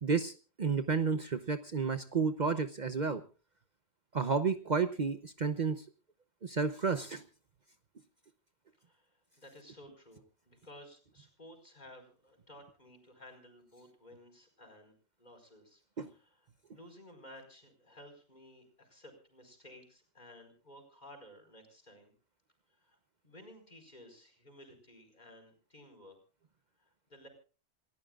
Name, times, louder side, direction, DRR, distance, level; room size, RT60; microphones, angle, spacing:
voice 1, 0.0-3.2 4.1-5.8 6.4-7.2 16.0-16.1, right 5 dB, 45° right, 9 dB, 0.9 m, -31 dB
voice 2, 8.8-15.8 16.1-16.3 16.7-22.1 22.8-23.0 23.2-26.2 26.8-27.3, left 1 dB, 40° left, 6 dB, 5.0 m, -55 dB
28.0 x 14.5 x 2.4 m, 0.36 s
omnidirectional pair, 1.1 m